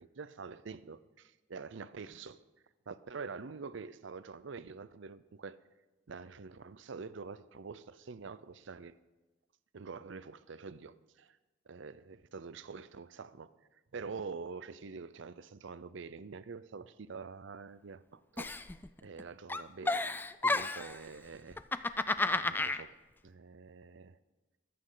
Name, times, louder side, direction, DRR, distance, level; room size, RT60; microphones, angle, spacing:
voice 1, 0.0-2.4 2.9-5.6 6.1-9.0 9.7-11.4 11.7-13.5 13.9-18.6 19.0-20.0 20.4-22.1 22.4-23.0 23.2-24.1, right 5 dB, 65° right, 0.5 m, -46 dB
Giggle, 18.4-19.2 19.5-21.0 21.5-22.8, left 2 dB, 10° left, 0.3 m, -32 dB
24.0 x 8.6 x 3.9 m
head